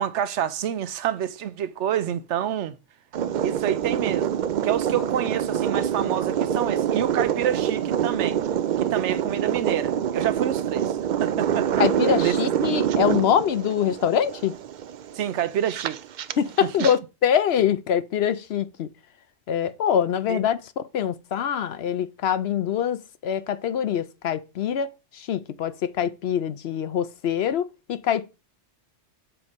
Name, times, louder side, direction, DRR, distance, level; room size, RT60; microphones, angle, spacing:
voice 1, 0.0-2.8 3.4-4.3 4.6-8.4 8.8-11.8 12.2-12.3 15.1-16.0 16.6-16.7 20.3-20.4, right 10 dB, 85° right, 1.0 m, -28 dB
sound 1, 3.1-16.9, right 9 dB, 60° right, 0.5 m, -26 dB
voice 2, 11.8-14.6 16.4-18.9 19.5-28.3, left 9 dB, 65° left, 0.9 m, -24 dB
7.0 x 4.2 x 5.1 m
omnidirectional pair, 1.2 m